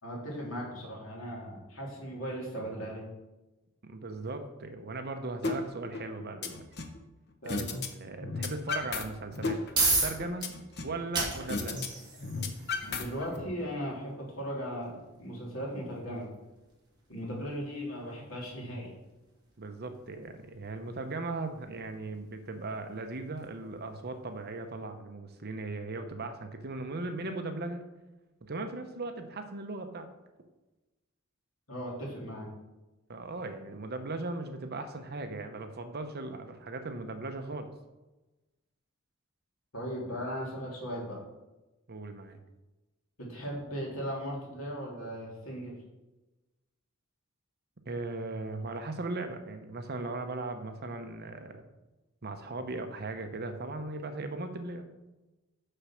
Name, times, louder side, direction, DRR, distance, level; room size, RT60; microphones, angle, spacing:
voice 1, 0.0-3.0 7.4-7.6 12.9-16.3 17.1-18.9 31.7-32.5 39.7-41.2 43.2-45.8, equal, 70° left, -4 dB, 2.9 m, -37 dB
voice 2, 3.8-6.6 7.4-7.6 7.9-9.6 9.9-10.5 10.8-11.9 19.6-27.8 28.5-30.1 33.1-37.7 41.9-42.4 47.9-51.6 52.2-54.8, right 3 dB, 50° right, 7 dB, 0.9 m, -38 dB
sound 1, 5.4-5.6 5.9-7.0 7.5-7.9 8.1-9.0 9.3-11.0 11.5-11.9 12.1-13.4, left 4 dB, 50° left, 0.9 m, -34 dB
sound 2, 9.3-24.1, right 3 dB, 20° right, 2.3 m, -38 dB
6.7 x 6.1 x 5.8 m, 1.1 s
head